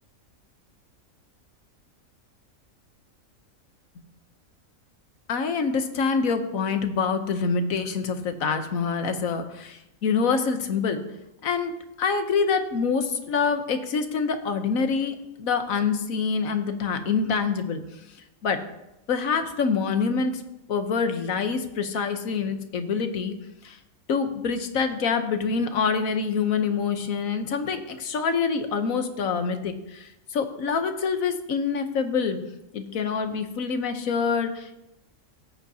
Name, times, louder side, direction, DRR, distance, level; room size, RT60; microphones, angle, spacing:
voice 1, 5.3-11.0 11.4-11.7 12.0-17.8 18.4-18.6 19.1-20.4 20.7-23.3 23.6-23.8 24.1-32.4 32.7-34.8, left 5 dB, 75° left, 8 dB, 1.4 m, -26 dB
17.0 x 8.8 x 2.8 m, 0.90 s
omnidirectional pair, 1.5 m